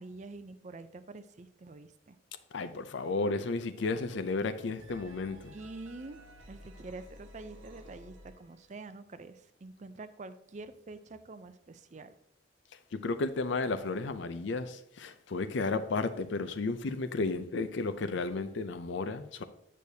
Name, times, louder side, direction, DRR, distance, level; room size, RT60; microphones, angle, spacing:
voice 1, 0.0-2.2 5.5-6.2 6.5-12.1, right 3 dB, 35° right, 0.5 m, -46 dB
voice 2, 2.5-5.5 12.9-19.4, left 3 dB, 70° left, 0.5 m, -33 dB
sound 1, 3.1-3.5 3.8-8.7, equal, 80° right, 1.2 m, -53 dB
8.5 x 6.3 x 2.7 m
head